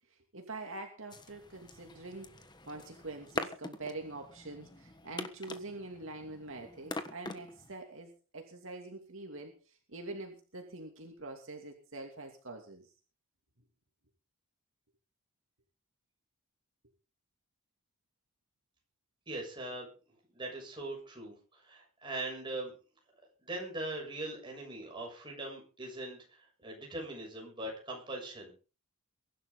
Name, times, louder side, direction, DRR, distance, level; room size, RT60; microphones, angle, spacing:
voice 1, 0.1-12.9, right 2 dB, 60° right, 3 dB, 2.6 m, -45 dB
sound 1, 1.1-7.7, left 2 dB, 20° left, 1.3 m, -44 dB
voice 2, 19.3-19.9 20.3-22.7 23.4-26.2 26.6-28.5, right 2 dB, 20° right, 0 dB, 7.2 m, -41 dB
23.0 x 11.5 x 3.9 m, 0.36 s
head